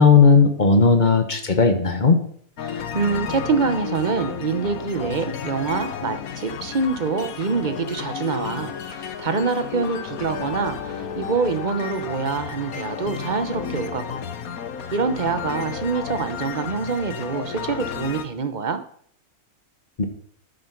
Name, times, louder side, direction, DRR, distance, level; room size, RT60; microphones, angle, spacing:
voice 1, 0.0-2.2 20.0-20.1, left 4 dB, 35° left, 7 dB, 1.3 m, -15 dB
sound 1, 2.6-18.3, left 8 dB, 75° left, 1.4 m, -32 dB
voice 2, 2.6-14.3 14.9-18.8, right 4 dB, 35° right, 9 dB, 1.0 m, -25 dB
10.0 x 7.9 x 5.9 m, 0.62 s
omnidirectional pair, 1.5 m